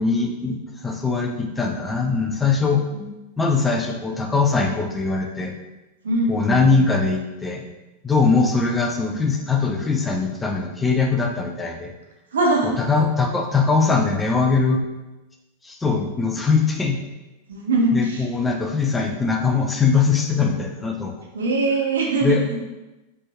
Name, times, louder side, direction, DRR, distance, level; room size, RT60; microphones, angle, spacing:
voice 1, 0.0-2.8 3.4-5.5 6.3-7.7 8.0-11.9 12.6-14.8 15.6-17.0 17.9-21.1 22.2-22.4, left 4 dB, 10° left, 2 dB, 0.6 m, -21 dB
voice 2, 6.0-6.8 12.3-12.8 17.5-18.3 21.3-22.6, right 2 dB, 65° right, 0 dB, 0.9 m, -22 dB
5.1 x 3.6 x 2.7 m, 1.0 s
figure-of-eight pair, 90°, 0 cm